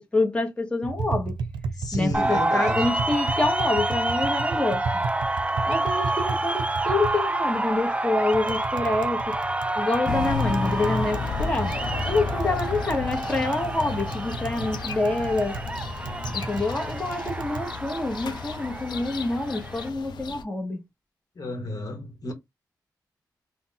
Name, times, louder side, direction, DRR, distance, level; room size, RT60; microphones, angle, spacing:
voice 1, 0.0-1.4 1.9-5.0 5.7-9.3 9.8-11.7 12.0-15.6 16.3-20.8, left 2 dB, 15° left, 0.9 m, -27 dB
Tap, 0.8-17.7, right 4 dB, 85° right, 0.4 m, -35 dB
voice 2, 1.8-2.9 21.4-22.3, left 2 dB, 55° left, 1.0 m, -32 dB
sound 1, 2.1-19.9, right 2 dB, 15° right, 0.4 m, -28 dB
sound 2, 10.1-20.4, left 5 dB, 75° left, 0.4 m, -33 dB
2.3 x 2.0 x 3.7 m
cardioid pair, 55°, 8 cm